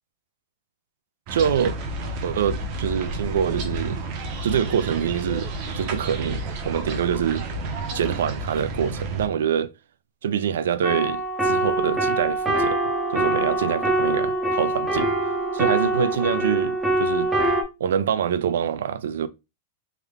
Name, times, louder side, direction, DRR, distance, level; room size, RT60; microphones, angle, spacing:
sound 1, 1.3-9.3, right 1 dB, 40° right, 0.7 m, -31 dB
voice 1, 1.3-1.8 2.2-4.0 4.4-7.5 7.9-9.7 10.2-15.1 15.5-17.3 17.8-19.3, right 8 dB, 85° right, 0.3 m, -25 dB
sound 2, 10.8-17.6, right 1 dB, 5° right, 0.5 m, -24 dB
3.4 x 2.2 x 3.5 m
supercardioid pair, 165°, 0 cm